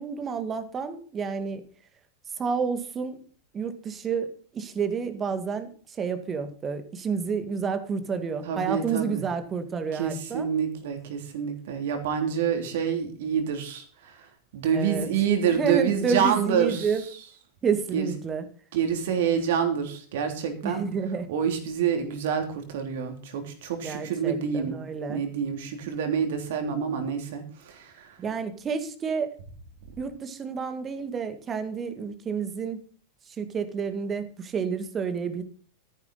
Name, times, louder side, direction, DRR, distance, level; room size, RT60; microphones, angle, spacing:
voice 1, 0.0-1.6 2.4-3.2 3.5-10.5 14.7-15.1 15.6-17.0 17.6-18.4 20.6-21.3 23.8-25.2 28.2-29.3 30.0-32.8 33.4-35.4, right 6 dB, 25° right, 10 dB, 2.0 m, -30 dB
voice 2, 8.4-9.3 9.9-14.3 14.5-17.3 17.9-18.2 18.7-20.9 21.3-24.8 25.1-28.2, right 7 dB, 55° right, 5 dB, 3.2 m, -27 dB
14.0 x 10.5 x 4.1 m, 0.43 s
figure-of-eight pair, 90°, 0 cm